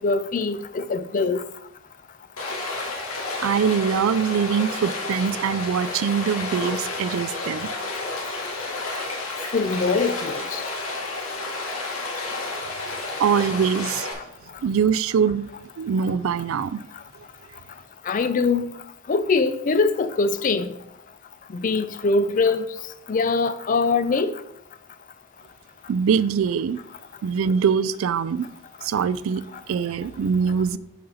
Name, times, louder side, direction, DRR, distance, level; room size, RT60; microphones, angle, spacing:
voice 1, 0.0-1.4 9.5-10.6 18.1-18.7 19.1-20.7 21.5-22.7 23.1-24.3, left 4 dB, 40° left, 0.4 m, -22 dB
Stream, 2.4-14.1, left 3 dB, 80° left, 1.5 m, -31 dB
voice 2, 3.4-7.7 13.2-14.1 14.6-15.5 15.8-16.8 25.9-26.8 27.2-28.5 28.8-30.8, right 7 dB, 70° right, 0.3 m, -23 dB
6.5 x 4.2 x 5.5 m
head